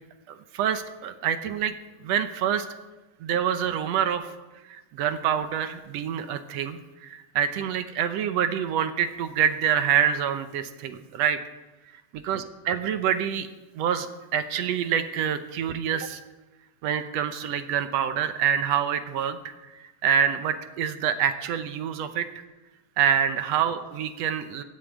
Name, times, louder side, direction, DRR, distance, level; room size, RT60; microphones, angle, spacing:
voice 1, 0.3-1.7 2.0-2.7 3.2-4.3 4.7-11.4 12.2-13.5 13.8-16.2 16.8-22.3 23.0-24.6, right 8 dB, 70° right, 10 dB, 1.9 m, -26 dB
15.0 x 8.7 x 9.1 m, 1.1 s
omnidirectional pair, 3.4 m